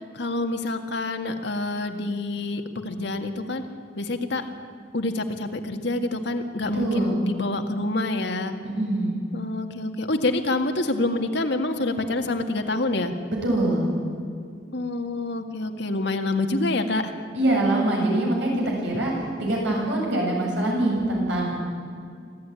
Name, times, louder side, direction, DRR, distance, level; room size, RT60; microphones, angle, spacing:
voice 1, 0.1-3.6 4.0-4.4 4.9-8.5 9.3-13.2 14.7-17.2, left 2 dB, 70° left, 5 dB, 1.9 m, -27 dB
voice 2, 6.7-7.2 8.8-9.2 13.4-13.9 17.3-21.6, right 1 dB, 75° right, -1 dB, 7.8 m, -24 dB
25.5 x 15.5 x 9.8 m, 2.3 s
head